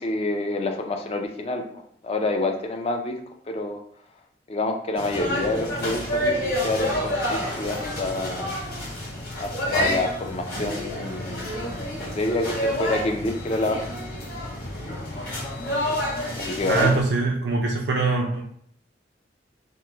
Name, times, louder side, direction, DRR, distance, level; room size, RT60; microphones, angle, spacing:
voice 1, 0.0-1.6 2.0-3.2 3.5-3.8 4.5-8.5 9.4-11.6 12.1-13.8 15.6-15.7 16.4-16.9, left 2 dB, 35° left, 4 dB, 0.4 m, -27 dB
sound 1, 5.0-17.0, left 1 dB, 55° left, 1.2 m, -29 dB
voice 2, 16.7-18.4, right 3 dB, 70° right, -1 dB, 0.4 m, -23 dB
3.0 x 2.1 x 3.3 m, 0.65 s
head